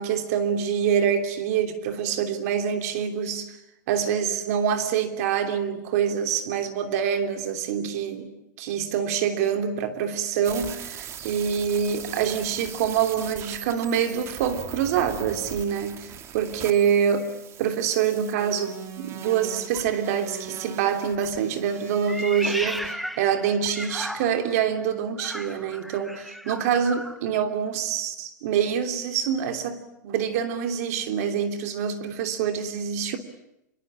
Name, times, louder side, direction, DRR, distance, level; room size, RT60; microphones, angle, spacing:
voice 1, 0.0-3.6 3.9-8.3 8.6-17.3 17.6-33.2, right 8 dB, 55° right, 7 dB, 3.1 m, -26 dB
sound 1, 10.4-22.9, right 8 dB, 30° right, 2.5 m, -41 dB
Meow, 22.0-24.6 25.1-27.2, equal, ahead, 1.4 m, -35 dB
26.0 x 25.0 x 8.8 m, 0.86 s
hypercardioid pair, 135°, 10 cm